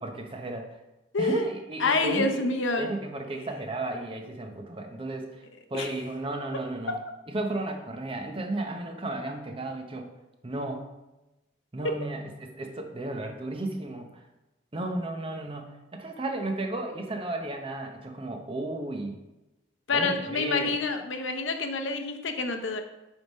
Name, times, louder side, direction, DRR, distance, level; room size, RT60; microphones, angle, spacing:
voice 1, 0.0-0.7 1.2-2.4 2.8-5.4 5.7-7.0 7.3-10.1 10.4-10.8 11.7-14.1 14.7-19.2 19.9-20.7, right 1 dB, 30° right, 4 dB, 0.8 m, -33 dB
voice 2, 1.1-1.4 1.8-2.9 5.7-5.9 19.9-22.8, left 3 dB, 90° left, 5 dB, 0.8 m, -27 dB
7.6 x 3.5 x 5.3 m, 0.99 s
head